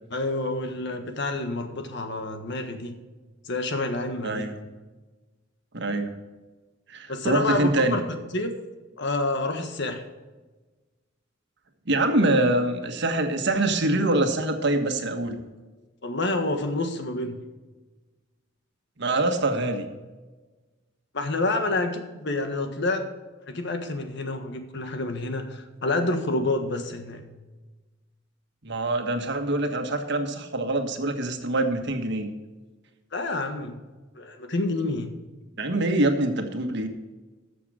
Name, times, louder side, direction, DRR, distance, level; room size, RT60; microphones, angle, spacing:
voice 1, 0.1-2.9 3.4-4.5 7.1-8.0 8.3-8.5 9.0-10.0 16.0-17.4 21.1-23.1 23.5-27.2 33.1-33.8 34.1-35.1, left 2 dB, 65° left, 6 dB, 1.5 m, -28 dB
voice 2, 4.2-4.6 5.7-6.1 6.9-8.0 11.9-15.4 19.0-19.9 28.6-32.3 35.6-36.9, right 2 dB, 65° right, 5 dB, 1.5 m, -24 dB
14.0 x 6.9 x 5.0 m, 1.2 s
head